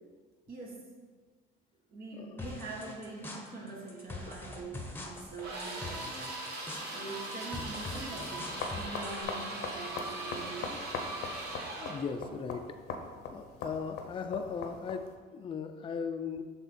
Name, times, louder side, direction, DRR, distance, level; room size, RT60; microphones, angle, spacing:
voice 1, 0.5-0.9 1.9-6.1 6.9-11.0, right 3 dB, 60° right, -1 dB, 1.6 m, -44 dB
sound 1, 2.4-9.2, left 2 dB, 15° left, 0.9 m, -44 dB
sound 2, 5.4-12.1, right 2 dB, 75° right, 1.4 m, -40 dB
sound 3, 8.3-15.2, left 4 dB, 90° left, 0.8 m, -42 dB
voice 2, 11.8-12.7 13.3-15.1 15.3-16.4, left 6 dB, 30° left, 7 dB, 0.4 m, -37 dB
7.1 x 3.5 x 4.5 m, 1.4 s
cardioid pair, 110°, 17 cm